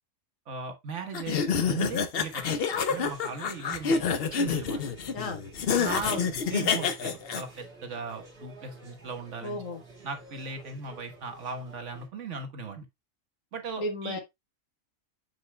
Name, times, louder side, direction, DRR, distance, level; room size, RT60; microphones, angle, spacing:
voice 1, 0.5-4.9 5.8-9.6 10.0-12.9 13.5-14.2, right 4 dB, 65° right, 1.6 m, -38 dB
sound 1, 1.1-7.4, left 6 dB, 55° left, 0.9 m, -28 dB
sound 2, 2.1-12.1, right 3 dB, 50° right, 2.8 m, -51 dB
voice 2, 9.4-9.8 13.8-14.2, left 2 dB, 80° left, 1.7 m, -33 dB
6.9 x 6.7 x 2.2 m
omnidirectional pair, 1.4 m